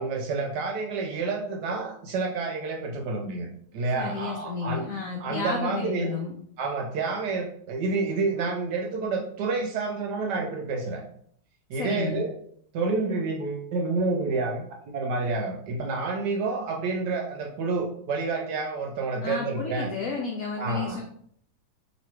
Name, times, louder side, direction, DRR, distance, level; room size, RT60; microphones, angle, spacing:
voice 1, 0.0-3.5 3.7-4.9 5.2-6.1 6.6-11.0 11.7-12.3 12.7-14.7 14.9-19.9 20.6-21.0, right 3 dB, 70° right, 2 dB, 1.1 m, -29 dB
voice 2, 4.0-6.3 11.7-12.2 19.2-21.0, left 4 dB, 90° left, 0 dB, 0.7 m, -32 dB
3.1 x 3.0 x 4.4 m, 0.64 s
omnidirectional pair, 2.2 m